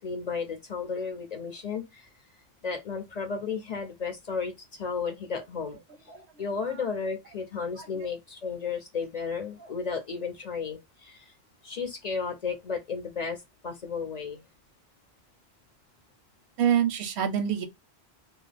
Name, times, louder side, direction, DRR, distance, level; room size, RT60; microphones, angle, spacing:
voice 1, 0.0-2.0 2.6-5.8 6.1-11.2 11.6-13.4 13.6-14.4, left 5 dB, 50° left, 0.6 m, -33 dB
voice 2, 6.3-6.8 7.8-8.1 16.6-17.6, right 9 dB, 90° right, 0.9 m, -27 dB
2.3 x 2.0 x 3.2 m
omnidirectional pair, 1.1 m